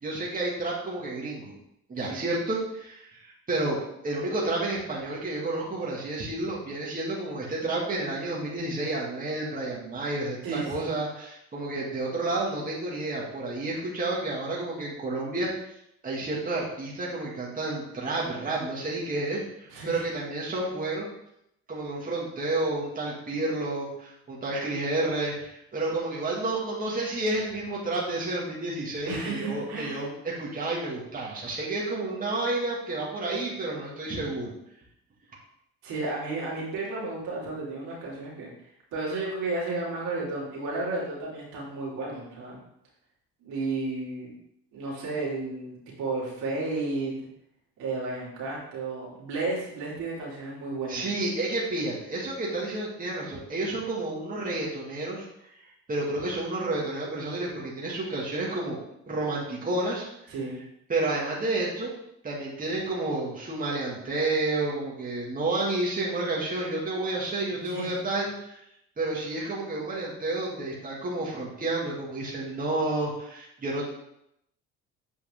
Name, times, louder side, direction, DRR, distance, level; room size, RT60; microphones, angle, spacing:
voice 1, 0.0-1.5 1.9-3.8 4.0-15.5 16.0-21.1 21.7-34.5 50.9-55.3 55.9-58.8 59.1-60.1 60.9-61.9 62.2-68.6 69.0-73.8, right 2 dB, 30° right, -5 dB, 2.2 m, -30 dB
voice 2, 10.4-10.9 19.7-20.0 29.1-30.0 35.8-38.5 38.9-42.6 43.4-44.3 44.7-47.2 47.8-51.1 60.3-60.6 67.5-67.9, right 3 dB, 75° right, -5 dB, 3.0 m, -33 dB
8.0 x 4.7 x 3.7 m, 0.78 s
cardioid pair, 95°, 30 cm